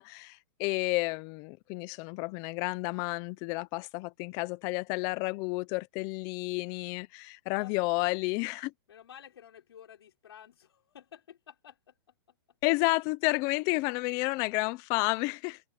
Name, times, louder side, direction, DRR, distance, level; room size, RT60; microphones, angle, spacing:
voice 1, 0.0-8.7 12.6-15.6, left 24 dB, 25° left, 0.7 m, -31 dB
voice 2, 8.9-12.0 14.1-14.4, left 9 dB, 90° left, 5.8 m, -52 dB
supercardioid pair, 165°, 13 cm